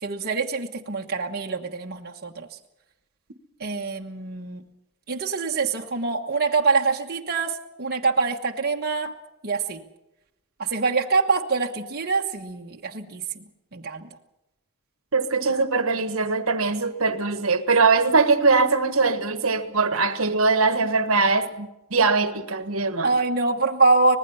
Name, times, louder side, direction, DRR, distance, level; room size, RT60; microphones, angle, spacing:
voice 1, 0.0-2.6 3.6-4.7 5.1-9.1 9.4-9.8 10.6-13.4 13.7-14.2 23.0-24.2, right 4 dB, 45° right, 1.3 m, -25 dB
voice 2, 15.1-23.1, right 4 dB, 70° right, 1.4 m, -21 dB
25.0 x 20.0 x 5.6 m
head